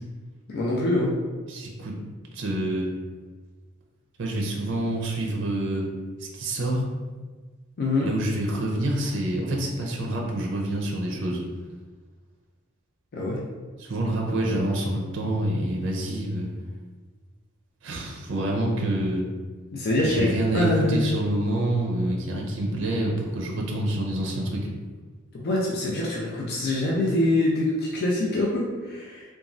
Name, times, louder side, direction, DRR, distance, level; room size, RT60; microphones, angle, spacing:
voice 1, 0.5-1.1 7.8-8.1 13.1-13.4 19.7-20.3 20.5-21.2 25.3-29.2, left 1 dB, 50° left, -4 dB, 0.4 m, -24 dB
voice 2, 1.5-2.0 2.3-2.9 4.2-5.9 6.2-6.9 8.0-11.4 13.8-16.5 17.8-19.2 20.0-24.7, right 1 dB, 60° right, -1 dB, 0.5 m, -27 dB
3.0 x 2.2 x 2.5 m, 1.4 s
head